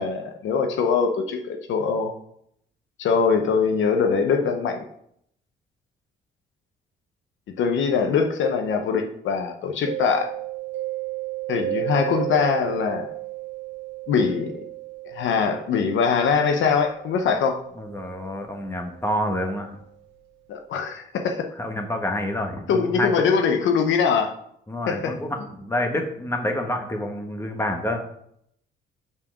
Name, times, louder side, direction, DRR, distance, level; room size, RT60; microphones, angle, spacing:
voice 1, 0.0-2.1 3.0-4.8 7.6-10.3 11.5-13.1 14.1-14.5 15.1-17.6 20.5-21.5 22.7-24.3 24.9-25.1, left 5 dB, 75° left, 4 dB, 0.9 m, -22 dB
Mallet percussion, 9.9-19.4, right 17 dB, 65° right, 1.8 m, -34 dB
voice 2, 17.8-19.7 21.5-23.1 24.7-28.0, left 1 dB, 15° left, 3 dB, 1.4 m, -28 dB
5.8 x 4.7 x 6.2 m, 0.72 s
cardioid pair, 90°, 20 cm